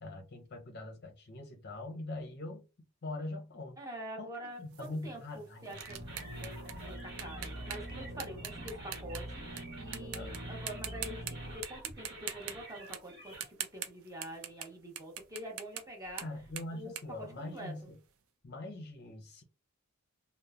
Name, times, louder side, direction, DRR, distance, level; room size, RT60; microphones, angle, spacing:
voice 1, 0.0-2.7 3.0-3.8 4.2-4.3 4.6-5.8 6.1-6.6 10.1-10.4 16.2-18.0 18.4-19.4, left 2 dB, 45° left, 0.5 m, -43 dB
voice 2, 3.8-6.0 6.8-16.3 16.7-17.9, equal, 15° right, 0.7 m, -46 dB
sound 1, 4.7-9.6 9.9-10.4 10.7-11.3 11.6-14.7 15.0-18.0, right 9 dB, 65° right, 0.4 m, -43 dB
sound 2, 5.7-13.5, right 1 dB, 50° right, 1.1 m, -50 dB
sound 3, 5.9-11.6, right 1 dB, 90° right, 0.8 m, -44 dB
2.9 x 2.0 x 2.4 m
head